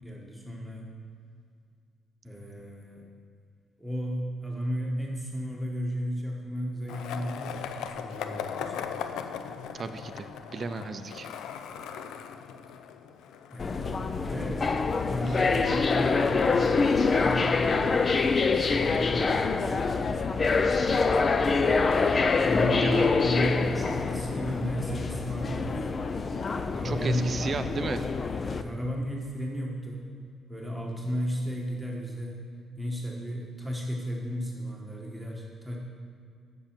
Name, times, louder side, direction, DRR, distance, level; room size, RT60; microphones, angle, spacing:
voice 1, 0.0-0.9 2.2-3.0 3.8-8.9 13.5-14.7 15.0-17.7 18.0-20.1 21.5-25.8 26.5-27.3 28.4-30.1 30.5-32.4 32.8-35.8, equal, 5° right, -2 dB, 1.4 m, -34 dB
Skateboard, 6.9-14.8, left 8 dB, 85° left, 0.5 m, -39 dB
voice 2, 9.7-11.3 15.3-15.4 22.8-23.1 26.8-28.0, right 5 dB, 45° right, 8 dB, 0.5 m, -34 dB
sound 1, 13.6-28.6, left 4 dB, 40° left, 0.5 m, -25 dB
7.2 x 6.3 x 7.4 m, 2.3 s
cardioid pair, 90°, 0 cm